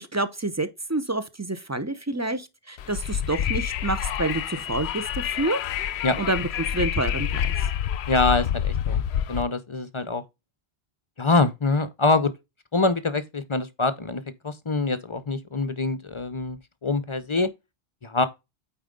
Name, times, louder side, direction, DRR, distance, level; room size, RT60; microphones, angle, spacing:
voice 1, 0.0-5.6 6.2-7.5, right 2 dB, 20° right, 0.6 m, -28 dB
Wind, 2.8-9.4, left 9 dB, 85° left, 0.8 m, -28 dB
voice 2, 8.1-9.0 9.3-10.2 11.2-12.3 12.7-17.5 18.0-18.3, left 3 dB, 35° left, 0.6 m, -24 dB
8.9 x 4.3 x 3.7 m
omnidirectional pair, 1.1 m